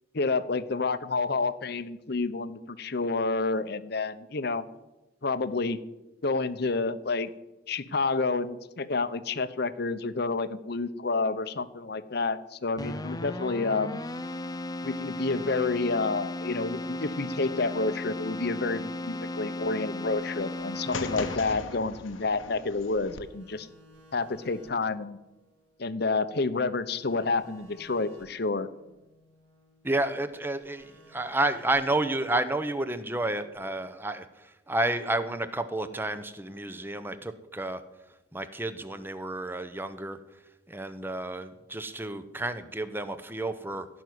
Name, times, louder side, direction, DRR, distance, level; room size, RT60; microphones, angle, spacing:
voice 1, 0.1-4.6 5.2-5.8 6.2-7.3 7.7-14.0 14.8-23.7 24.1-25.2 25.8-28.7, left 3 dB, 55° left, 13 dB, 0.8 m, -29 dB
Keyboard (musical), 12.8-21.8, left 2 dB, 20° left, 0.5 m, -36 dB
sound 1, 19.6-22.9 23.2-26.5 26.8-30.0 30.3-33.6, equal, 75° right, 5.8 m, -58 dB
sound 2, 20.9-23.2, left 3 dB, 90° left, 1.1 m, -38 dB
voice 2, 29.8-34.3 34.7-37.8 38.3-40.2 40.7-43.9, right 2 dB, 10° right, 11 dB, 0.8 m, -30 dB
16.5 x 6.1 x 9.5 m, 0.98 s
head